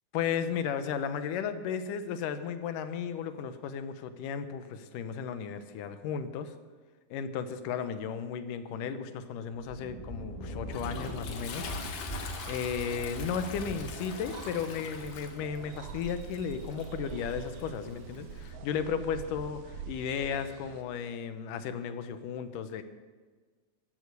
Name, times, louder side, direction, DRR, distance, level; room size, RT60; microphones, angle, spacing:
voice 1, 0.1-6.5 7.1-11.7 12.5-22.8, left 7 dB, 85° left, 10 dB, 2.5 m, -34 dB
Thunder, 9.5-16.2, equal, 15° left, 2.2 m, -42 dB
Toilet flush, 10.2-18.5, left 5 dB, 60° left, 2.5 m, -44 dB
sound 1, 10.7-20.8, right 5 dB, 65° right, 1.9 m, -45 dB
15.0 x 11.5 x 6.7 m, 1.4 s
omnidirectional pair, 3.6 m